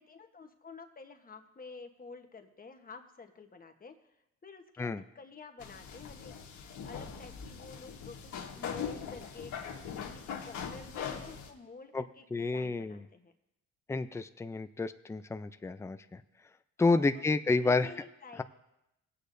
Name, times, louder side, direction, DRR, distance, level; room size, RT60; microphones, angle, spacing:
voice 1, 0.0-3.9 4.4-6.4 6.7-13.3 16.8-17.0 17.6-18.4, left 4 dB, 30° left, 6 dB, 1.2 m, -50 dB
sound 1, 5.6-11.5, left 7 dB, 75° left, 1.5 m, -41 dB
voice 2, 12.3-13.0 13.9-16.2 16.8-17.9 18.4-18.5, left 3 dB, 10° left, 10 dB, 0.4 m, -30 dB
19.5 x 8.3 x 2.7 m, 0.87 s
cardioid pair, 90°, 30 cm